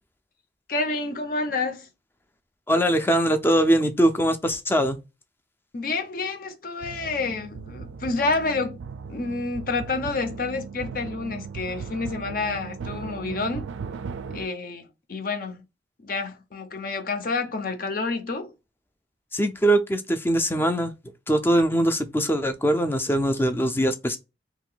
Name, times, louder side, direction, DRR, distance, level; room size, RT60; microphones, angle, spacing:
voice 1, 0.7-1.9 5.7-8.8 9.1-13.7 14.3-15.6 16.0-18.5, left 3 dB, 50° left, 0.6 m, -29 dB
voice 2, 2.7-5.0 19.3-20.9 21.3-24.2, right 1 dB, 10° left, 0.4 m, -22 dB
sound 1, 6.8-14.5, right 5 dB, 85° right, 0.3 m, -37 dB
2.9 x 2.6 x 3.8 m
head